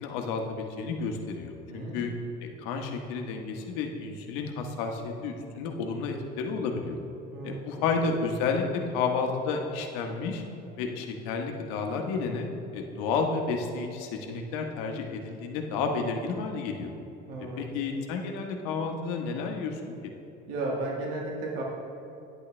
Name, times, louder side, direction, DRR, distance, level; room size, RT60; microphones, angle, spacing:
voice 1, 0.0-2.1 2.4-7.0 7.4-10.4 10.8-16.9 17.6-20.1, left 4 dB, 80° left, 3 dB, 1.1 m, -31 dB
voice 2, 1.7-2.1 7.3-7.9 17.3-17.6 20.5-21.6, right 2 dB, 80° right, -2 dB, 1.6 m, -34 dB
9.9 x 8.4 x 3.3 m, 2.9 s
cardioid pair, 155°, 21 cm